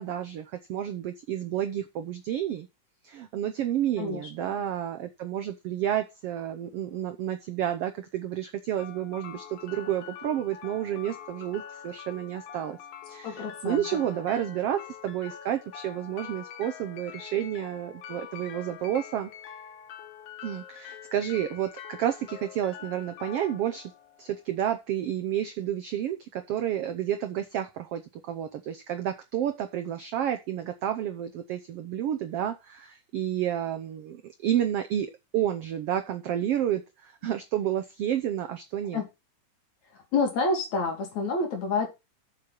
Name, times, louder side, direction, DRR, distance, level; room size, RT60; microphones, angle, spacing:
voice 1, 0.0-2.7 3.0-12.8 13.1-19.3 20.4-23.9 24.2-39.0, right 11 dB, 80° right, 8 dB, 1.3 m, -30 dB
voice 2, 4.0-4.6 13.2-13.9 38.9-39.1 40.1-41.9, left 3 dB, 60° left, 3 dB, 3.8 m, -28 dB
sound 1, 8.8-24.8, left 9 dB, 90° left, 2.8 m, -45 dB
7.4 x 6.5 x 5.9 m, 0.25 s
omnidirectional pair, 3.8 m